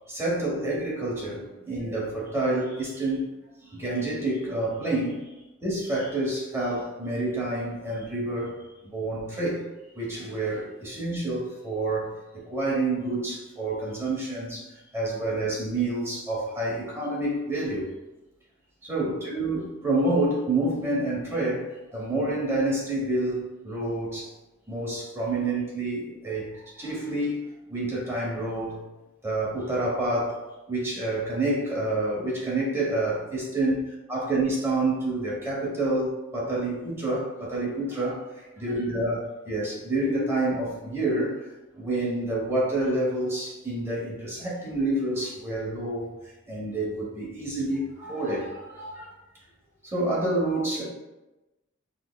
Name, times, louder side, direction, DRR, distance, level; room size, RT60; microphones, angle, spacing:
voice 1, 0.1-3.3 3.6-5.3 5.6-8.6 8.9-9.6 9.9-14.7 14.9-17.9 18.8-24.3 24.7-27.4 27.7-28.8 29.2-30.4 30.7-33.8 34.1-39.2 39.4-41.4 41.8-46.1 46.5-49.1 49.8-50.8, right 2 dB, 10° right, -5 dB, 1.0 m, -28 dB
5.9 x 2.1 x 2.3 m, 1.0 s
head